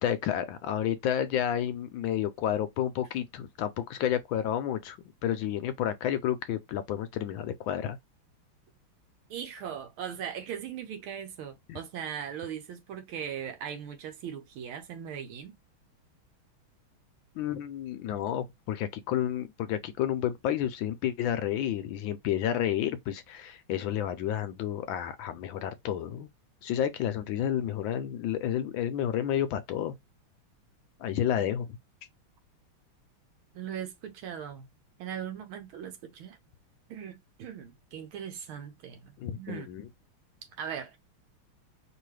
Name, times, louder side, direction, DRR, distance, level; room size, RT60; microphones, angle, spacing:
voice 1, 0.0-8.0 11.7-11.8 17.3-26.3 26.6-29.9 31.0-31.8 39.2-39.9, left 10 dB, 75° left, 1.2 m, -30 dB
voice 2, 9.3-15.5 33.5-34.7 35.0-36.4 36.9-39.7 40.6-41.0, right 8 dB, 75° right, 1.5 m, -39 dB
4.8 x 3.0 x 3.2 m
omnidirectional pair, 2.3 m